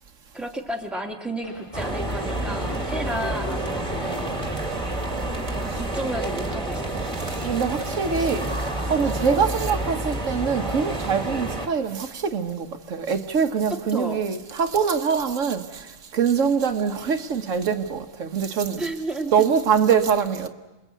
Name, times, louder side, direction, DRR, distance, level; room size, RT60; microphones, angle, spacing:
voice 1, 0.3-4.3 5.5-7.0 13.7-14.2 18.8-19.5, right 1 dB, ahead, 2.2 m, -32 dB
sound 1, 0.9-1.1 1.4-7.6, equal, 25° left, 3.5 m, -42 dB
sound 2, 1.7-11.7, right 1 dB, 25° right, 2.2 m, -29 dB
voice 2, 7.4-8.5 8.9-15.9 16.1-18.8 19.3-20.5, right 6 dB, 90° right, 1.6 m, -23 dB
28.0 x 21.5 x 8.3 m
omnidirectional pair, 1.3 m